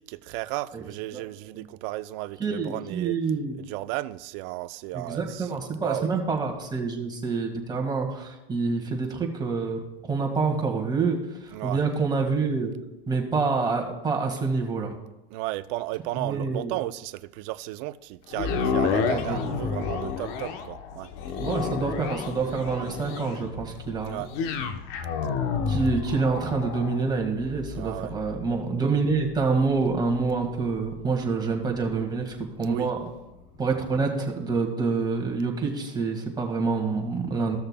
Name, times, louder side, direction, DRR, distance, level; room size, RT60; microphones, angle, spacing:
voice 1, 0.0-3.2 3.6-5.5 5.8-6.1 11.5-11.8 15.3-21.1 24.0-24.3 27.7-28.1 32.6-32.9, right 18 dB, 50° right, 0.5 m, -34 dB
voice 2, 2.4-3.6 4.9-9.8 10.1-12.7 13.1-15.0 16.1-16.8 19.1-19.6 21.4-24.2 25.7-33.0 33.6-37.6, right 4 dB, 15° right, 1.7 m, -27 dB
sound 1, 18.3-32.5 33.0-33.1, left 6 dB, 50° left, 1.0 m, -31 dB
15.5 x 6.5 x 2.2 m
hypercardioid pair, 115°, 30 cm